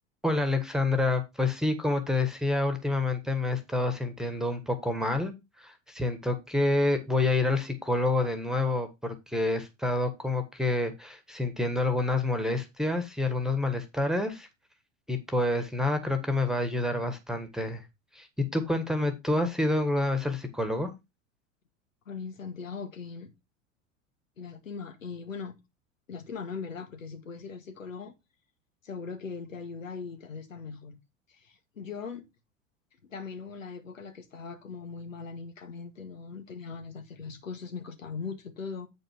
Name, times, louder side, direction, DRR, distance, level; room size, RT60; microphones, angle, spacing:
voice 1, 0.2-5.3 5.6-14.5 15.1-17.9 18.1-20.9, left 2 dB, ahead, 1.6 m, -28 dB
voice 2, 22.1-23.3 24.4-25.6 26.1-28.1 28.8-31.0 31.3-32.2 33.1-38.9, left 5 dB, 80° left, 1.9 m, -40 dB
8.5 x 5.3 x 4.7 m
hypercardioid pair, 90°, 38 cm